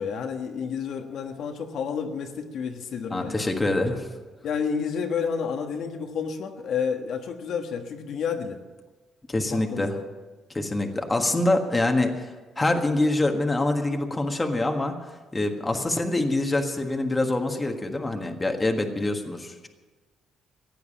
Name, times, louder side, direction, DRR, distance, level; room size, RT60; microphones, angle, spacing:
voice 1, 0.0-3.4 4.4-8.6 9.5-10.0, left 6 dB, 65° left, 4 dB, 1.5 m, -30 dB
voice 2, 3.1-4.0 9.3-10.0 10.5-19.7, left 2 dB, 15° left, 4 dB, 1.6 m, -25 dB
15.0 x 9.3 x 8.9 m, 1.3 s
cardioid pair, 120°, 0 cm